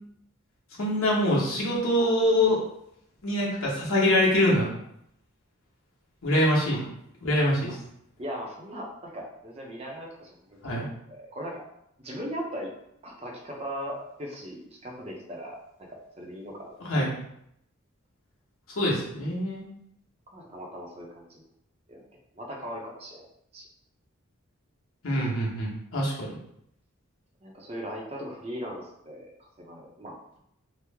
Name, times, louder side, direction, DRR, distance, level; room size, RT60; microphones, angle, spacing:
voice 1, 0.8-2.6 3.2-4.7 6.2-6.9 7.2-7.8 10.6-10.9 16.8-17.1 18.8-19.6 25.0-26.4, left 1 dB, 80° left, -5 dB, 1.0 m, -24 dB
voice 2, 6.4-6.8 8.2-11.6 12.0-12.7 13.0-15.6 15.9-16.9 20.3-21.4 21.9-22.0 22.3-23.2 23.5-23.7 27.4-30.4, equal, 30° right, -1 dB, 0.5 m, -39 dB
3.0 x 2.0 x 3.4 m, 0.75 s
head